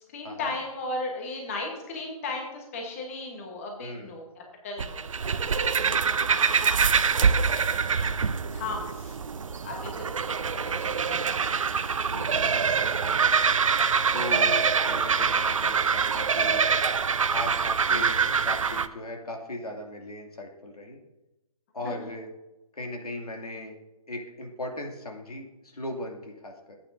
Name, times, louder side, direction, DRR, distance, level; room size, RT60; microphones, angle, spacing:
voice 1, 0.1-5.1 5.5-6.6 7.1-7.2 7.5-8.1 8.5-9.2 9.6-10.4 10.6-11.4 21.8-21.9, left 2 dB, 25° left, 1 dB, 1.2 m, -36 dB
voice 2, 3.8-4.1 12.1-13.5 14.1-16.6 17.3-21.0 21.7-22.3 22.7-23.8 24.1-26.8, left 1 dB, 80° left, 2 dB, 2.4 m, -38 dB
sound 1, 4.8-18.9, right 6 dB, 60° right, 0.6 m, -25 dB
14.5 x 8.7 x 2.6 m, 0.99 s
figure-of-eight pair, 160°, 19 cm